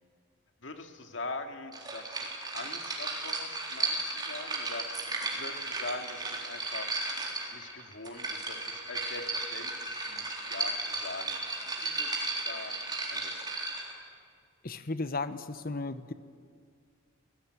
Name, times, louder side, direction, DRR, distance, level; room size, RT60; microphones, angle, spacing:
voice 1, 0.6-2.3 2.5-4.9 5.4-7.0 7.5-12.7 13.1-13.5, left 2 dB, 65° left, 5 dB, 2.3 m, -42 dB
sound 1, 1.7-14.0, right 3 dB, 20° right, 3.9 m, -35 dB
voice 2, 14.6-16.1, left 3 dB, 50° left, 12 dB, 1.1 m, -35 dB
26.0 x 19.0 x 9.5 m, 2.2 s
head